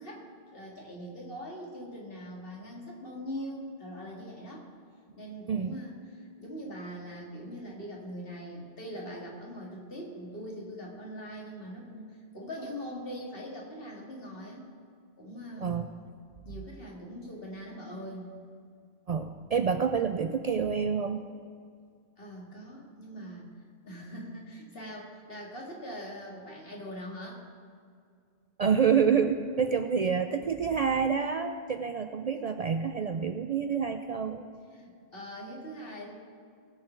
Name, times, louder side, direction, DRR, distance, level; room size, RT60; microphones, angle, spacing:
voice 1, 0.0-4.7 5.2-14.7 15.2-15.8 16.5-18.3 22.2-23.4 23.8-27.4 34.7-36.1, equal, 65° left, -2 dB, 2.3 m, -42 dB
voice 2, 19.1-21.2 28.6-34.5, right 6 dB, 55° right, 7 dB, 0.5 m, -27 dB
20.0 x 6.7 x 4.5 m, 2.2 s
omnidirectional pair, 1.0 m